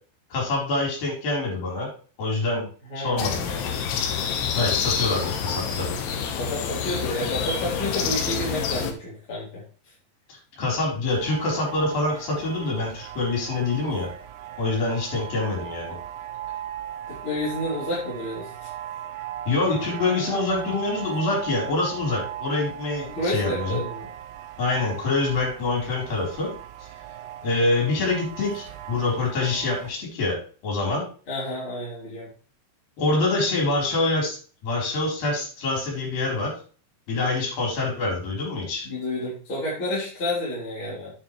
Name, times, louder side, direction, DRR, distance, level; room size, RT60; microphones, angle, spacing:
voice 1, 0.3-1.9 2.2-2.7 3.0-3.7 4.5-5.9 10.6-14.1 14.6-16.0 19.5-23.8 24.6-26.5 27.4-30.4 30.6-31.0 33.0-34.4 34.6-36.5 37.1-38.9, left 3 dB, 50° left, -2 dB, 5.8 m, -25 dB
voice 2, 2.9-3.3 5.7-6.0 6.4-9.6 17.1-18.7 23.1-24.1 31.3-32.3 38.8-41.1, left 1 dB, 30° left, -8 dB, 4.1 m, -30 dB
sound 1, 3.2-8.9, left 7 dB, 85° left, 3.7 m, -27 dB
sound 2, 11.1-29.9, right 11 dB, 80° right, 2.9 m, -38 dB
9.4 x 9.2 x 3.3 m, 0.40 s
omnidirectional pair, 5.3 m